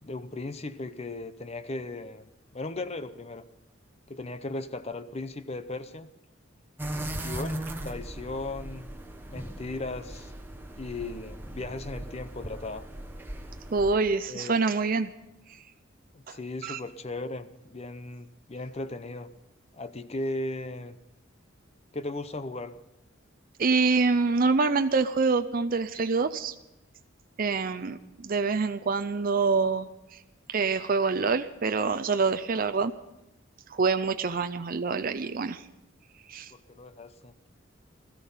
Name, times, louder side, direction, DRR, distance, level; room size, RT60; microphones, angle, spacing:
voice 1, 0.0-3.4 4.1-6.1 7.2-8.9 9.3-10.3 10.7-12.9 14.3-14.6 16.1-19.3 19.7-21.0 21.9-22.8 36.5-37.3, left 2 dB, 30° left, 12 dB, 0.7 m, -37 dB
sound 1, 6.8-13.9, right 1 dB, 10° right, 1.2 m, -38 dB
voice 2, 13.7-15.1 16.3-16.4 16.6-16.8 23.6-26.5 27.4-29.9 30.5-32.9 33.7-35.6 36.3-36.5, right 4 dB, 45° right, 9 dB, 0.5 m, -26 dB
17.0 x 14.0 x 5.6 m, 0.89 s
head